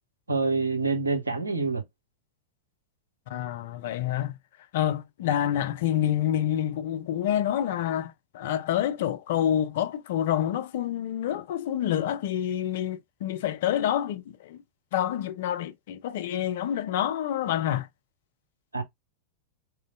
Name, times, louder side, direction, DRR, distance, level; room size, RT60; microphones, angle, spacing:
voice 1, 0.3-1.8 18.7-18.8, right 4 dB, 80° right, 0.8 m, -26 dB
voice 2, 3.3-4.3 4.7-14.6 14.9-17.9, left 11 dB, 55° left, 0.5 m, -28 dB
4.0 x 3.1 x 2.4 m
figure-of-eight pair, 90°, 0 cm